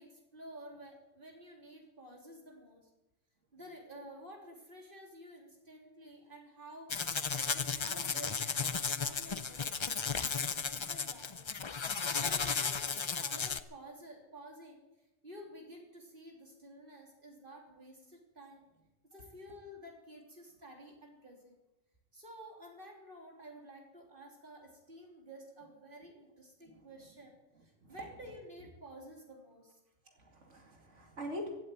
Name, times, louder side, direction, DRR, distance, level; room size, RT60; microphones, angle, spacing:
voice 1, 0.0-2.8 3.5-6.9 7.4-11.5 12.2-14.8 15.2-18.7 19.1-21.6 22.1-29.8, equal, 45° right, 0 dB, 3.5 m, -52 dB
sound 1, 6.9-13.6, left 5 dB, 45° left, 0.4 m, -34 dB
voice 2, 27.6-28.0 30.1-31.6, left 1 dB, 70° right, 2 dB, 2.8 m, -44 dB
16.0 x 8.8 x 9.2 m, 0.99 s
omnidirectional pair, 1.3 m